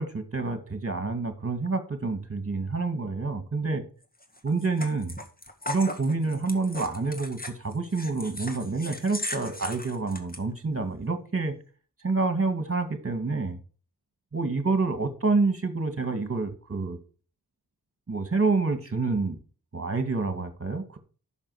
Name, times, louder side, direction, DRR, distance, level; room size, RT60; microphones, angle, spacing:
voice 1, 0.0-3.8 4.4-5.2 5.7-11.5 12.0-13.6 14.3-17.0 18.1-19.4 19.7-21.0, right 3 dB, 35° right, 8 dB, 2.2 m, -28 dB
sound 1, 4.2-10.4, left 1 dB, 20° left, 2.0 m, -38 dB
10.5 x 6.5 x 4.9 m, 0.38 s
wide cardioid pair, 85°, 40 cm